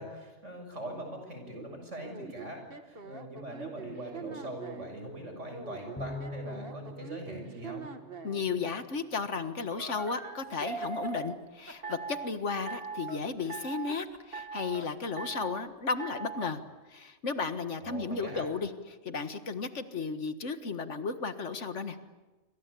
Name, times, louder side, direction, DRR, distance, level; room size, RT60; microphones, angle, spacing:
voice 1, 0.0-7.9 17.8-18.4, right 1 dB, 80° right, 4 dB, 7.1 m, -42 dB
sound 1, 2.0-5.0 5.5-8.5 9.7-11.4 11.8-12.3 12.7-13.2 13.5-14.0 14.3-14.9 15.2-15.6 16.0-16.5, right 5 dB, 50° right, 1.8 m, -41 dB
Bowed string instrument, 6.0-8.6, left 1 dB, 5° left, 2.2 m, -43 dB
voice 2, 8.2-16.6 16.9-18.7 19.0-22.0, left 4 dB, 75° left, 10 dB, 1.9 m, -34 dB
sound 2, 10.4-11.2 11.7-13.1 13.4-15.6, right 1 dB, 10° right, 2.2 m, -49 dB
27.5 x 25.5 x 8.4 m, 1.2 s
omnidirectional pair, 1.2 m